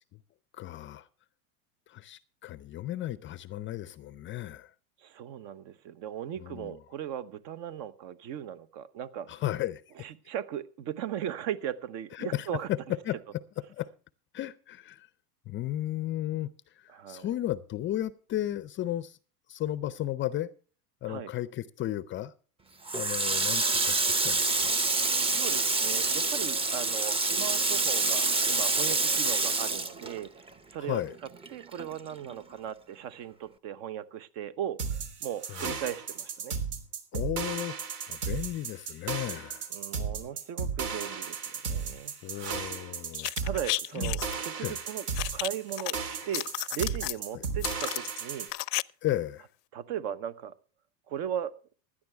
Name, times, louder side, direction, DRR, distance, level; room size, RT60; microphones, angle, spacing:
voice 1, 0.5-1.1 1.9-4.7 6.4-6.8 9.3-9.8 12.1-13.4 13.7-13.9 14.3-15.1 15.5-19.2 19.5-20.5 21.0-22.3 22.9-24.7 30.8-31.2 35.5-35.8 37.1-37.8 38.1-39.7 42.2-43.3 43.9-44.2 44.6-44.8 47.3-47.4 49.0-49.5, left 13 dB, 25° left, 0.5 m, -34 dB
voice 2, 5.0-9.3 10.0-12.7 16.9-17.3 21.0-21.3 25.2-31.0 31.5-36.6 39.7-42.1 43.4-45.0 45.3-46.4 46.7-48.5 49.7-50.6 51.1-51.6, right 9 dB, 55° right, 1.1 m, -37 dB
Water tap faucet, 22.9-30.7 31.0-32.3, right 3 dB, 10° right, 0.7 m, -27 dB
sound 1, 34.8-48.5, right 5 dB, 70° right, 3.3 m, -35 dB
sound 2, 43.1-44.4 45.2-45.9 46.2-47.2 47.6-48.8 49.1-49.2, left 20 dB, 85° left, 0.5 m, -33 dB
16.0 x 11.5 x 3.4 m
hypercardioid pair, 110°, 47 cm